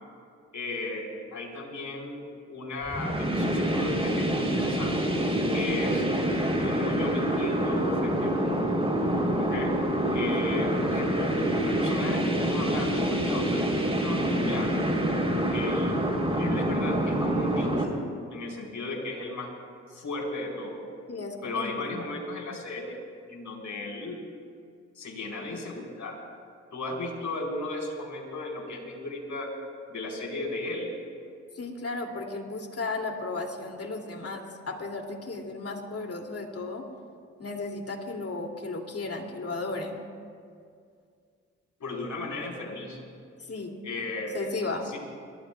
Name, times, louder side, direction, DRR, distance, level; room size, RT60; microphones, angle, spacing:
voice 1, 0.5-1.1 1.3-2.2 2.5-5.0 5.5-6.0 6.6-8.7 9.4-9.7 10.1-14.9 15.5-16.0 16.4-17.9 18.3-19.5 19.9-20.8 21.4-23.0 23.3-24.2 24.9-26.2 26.7-29.5 29.9-30.9 41.8-43.0 43.8-44.4 44.8-45.0, left 2 dB, 65° left, -1 dB, 4.7 m, -35 dB
sound 1, 2.9-17.8, right 1 dB, 20° right, 3.6 m, -26 dB
voice 2, 21.1-21.8 31.5-36.9 37.4-40.0 43.5-43.8 44.3-44.9, left 3 dB, 45° left, 2 dB, 2.7 m, -34 dB
28.5 x 18.0 x 2.4 m, 2.2 s
supercardioid pair, 40°, 32 cm